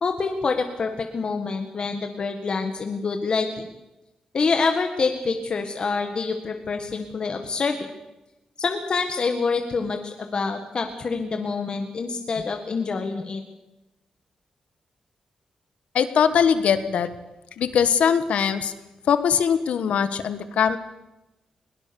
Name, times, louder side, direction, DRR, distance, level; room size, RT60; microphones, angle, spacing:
voice 1, 0.0-3.5 4.3-7.9 8.6-13.4, left 4 dB, 45° left, 5 dB, 1.7 m, -26 dB
voice 2, 15.9-17.1 17.6-18.7 19.1-20.8, left 7 dB, 85° left, 11 dB, 1.4 m, -21 dB
21.0 x 18.5 x 7.0 m, 0.99 s
wide cardioid pair, 110°, 2 cm